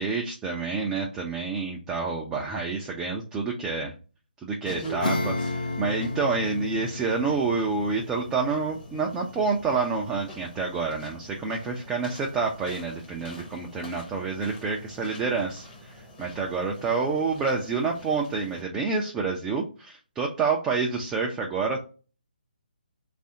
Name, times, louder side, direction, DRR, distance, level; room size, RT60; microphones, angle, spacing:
voice 1, 0.0-3.9 4.4-21.8, right 4 dB, 10° right, -1 dB, 0.4 m, -28 dB
sound 1, 4.6-18.6, equal, 15° left, 0.7 m, -45 dB
Acoustic guitar / Strum, 5.0-11.0, left 2 dB, 55° left, 0.7 m, -34 dB
3.3 x 2.4 x 2.7 m, 0.34 s
figure-of-eight pair, 140°, 5 cm